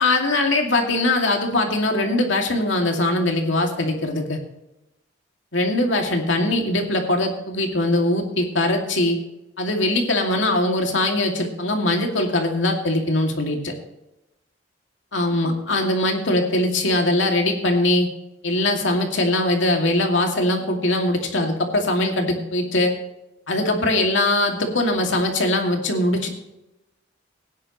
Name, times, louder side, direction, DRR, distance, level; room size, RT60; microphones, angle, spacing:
voice 1, 0.0-4.4 5.5-9.2 9.6-13.7 15.1-18.1 18.4-22.9 23.5-26.3, left 1 dB, 80° left, 2 dB, 2.4 m, -21 dB
18.0 x 10.0 x 3.1 m, 0.90 s
head